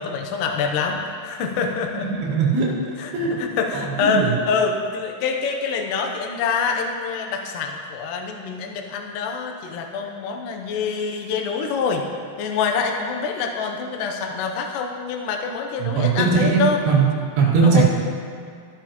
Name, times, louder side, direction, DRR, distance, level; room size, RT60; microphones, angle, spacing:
voice 1, 0.0-2.1 3.0-12.0 12.4-16.8 17.6-17.8, left 5 dB, 90° left, 2 dB, 1.8 m, -25 dB
voice 2, 2.0-2.7 3.1-3.4 4.0-4.3 15.8-17.1 17.4-17.8, right 5 dB, 65° right, -6 dB, 3.8 m, -19 dB
13.5 x 11.0 x 3.0 m, 2.3 s
omnidirectional pair, 5.1 m